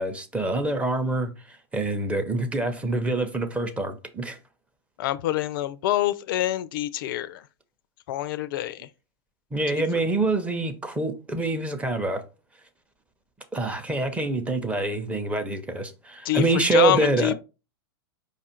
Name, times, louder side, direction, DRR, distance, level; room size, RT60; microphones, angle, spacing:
voice 1, 0.0-4.4 9.5-12.2 13.5-17.3, right 2 dB, 10° right, 0.6 m, -26 dB
voice 2, 5.0-7.4 8.1-8.9 16.3-16.4 16.7-17.3, left 13 dB, 60° left, 0.4 m, -25 dB
5.1 x 2.4 x 4.3 m
hypercardioid pair, 125°, 13 cm